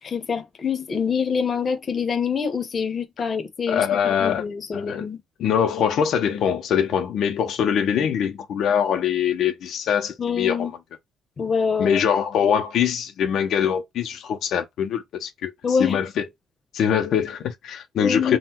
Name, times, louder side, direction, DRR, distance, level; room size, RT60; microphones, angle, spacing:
voice 1, 0.0-5.2 10.2-10.7 11.4-12.0 15.6-16.0 18.0-18.4, left 6 dB, 35° left, 1.0 m, -25 dB
voice 2, 3.7-4.4 4.7-5.1 5.4-10.7 11.8-15.5 15.8-16.3 16.7-18.4, left 8 dB, 65° left, 0.8 m, -23 dB
3.8 x 2.4 x 4.3 m
cardioid pair, 150°, 0 cm